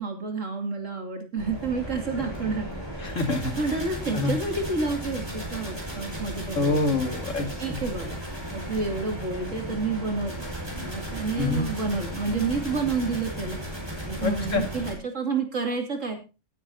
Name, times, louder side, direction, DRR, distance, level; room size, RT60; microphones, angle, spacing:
voice 1, 0.0-2.7 2.9-3.2 3.5-6.8 7.6-8.2 8.5-10.3 10.7-13.6 14.0-16.2, right 4 dB, 85° right, 3 dB, 3.4 m, -29 dB
sound 1, 1.4-15.0, equal, 20° right, 5.7 m, -35 dB
voice 2, 3.0-3.8 4.1-4.3 6.6-7.8 11.4-11.7 14.2-14.6, left 2 dB, 85° left, 5 dB, 2.9 m, -26 dB
19.5 x 9.3 x 2.9 m, 0.31 s
omnidirectional pair, 1.3 m